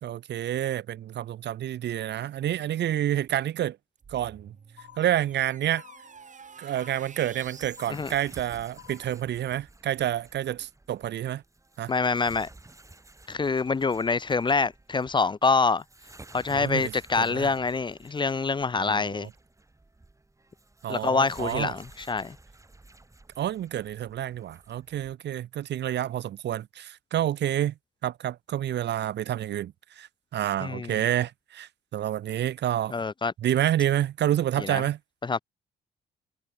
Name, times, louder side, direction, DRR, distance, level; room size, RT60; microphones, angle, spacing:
voice 1, 0.0-3.8 4.1-4.5 5.0-5.8 6.6-11.4 11.8-11.9 16.5-17.5 18.8-19.3 20.8-21.7 23.4-27.7 28.0-32.9 33.4-35.0, right 11 dB, 60° right, 0.7 m, -29 dB
sound 1, 4.0-7.9, right 6 dB, 40° right, 2.5 m, -49 dB
sound 2, 4.8-5.4 5.8-6.4 6.8-7.4 7.8-8.4 8.8-9.4, left 14 dB, 80° left, 1.9 m, -52 dB
sound 3, 7.2-25.1, right 2 dB, 15° right, 3.3 m, -53 dB
voice 2, 11.9-12.5 13.3-15.8 16.3-19.3 20.9-22.4 30.6-31.0 32.9-33.3 34.6-34.8 35.2-35.4, left 4 dB, 25° left, 0.5 m, -26 dB
cardioid pair, 90°, 20 cm